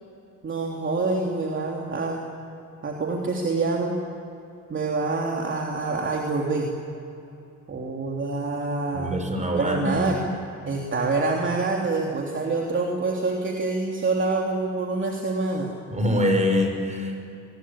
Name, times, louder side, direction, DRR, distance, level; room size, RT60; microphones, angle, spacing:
voice 1, 0.4-2.2 2.8-4.0 4.7-6.7 7.7-9.2 9.5-10.2 10.7-15.7, right 3 dB, 40° right, 0 dB, 3.2 m, -26 dB
voice 2, 8.9-10.2 15.9-17.2, left 1 dB, 25° right, 4 dB, 6.0 m, -24 dB
23.5 x 21.0 x 8.8 m, 2.8 s
cardioid pair, 90°, 30 cm